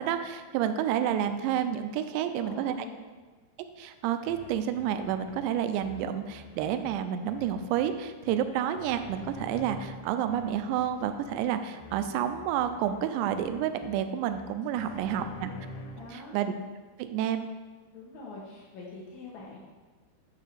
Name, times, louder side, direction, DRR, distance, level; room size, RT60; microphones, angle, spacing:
voice 1, 0.0-2.7 3.8-15.5 16.1-16.5 17.0-17.5, right 10 dB, 85° right, 9 dB, 2.6 m, -30 dB
voice 2, 2.2-3.0 14.7-15.6 15.9-16.3 17.9-19.6, left 3 dB, 90° left, -4 dB, 1.6 m, -45 dB
sound 1, 4.2-16.2, left 2 dB, 70° left, 2.8 m, -48 dB
9.2 x 3.3 x 6.7 m, 1.3 s
omnidirectional pair, 5.2 m